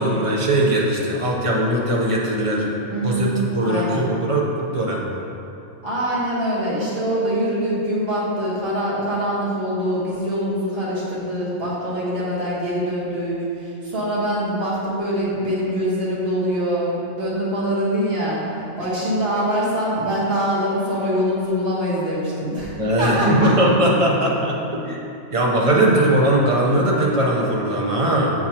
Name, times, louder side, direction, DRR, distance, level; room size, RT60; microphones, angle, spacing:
voice 1, 0.0-2.7 3.0-5.0 22.8-25.0 25.3-28.3, right 1 dB, 35° right, -3 dB, 0.6 m, -20 dB
voice 2, 2.9-3.3 3.6-4.0 5.8-22.7 23.0-23.5, equal, 50° right, -8 dB, 1.6 m, -24 dB
7.1 x 4.7 x 2.8 m, 2.8 s
omnidirectional pair, 1.3 m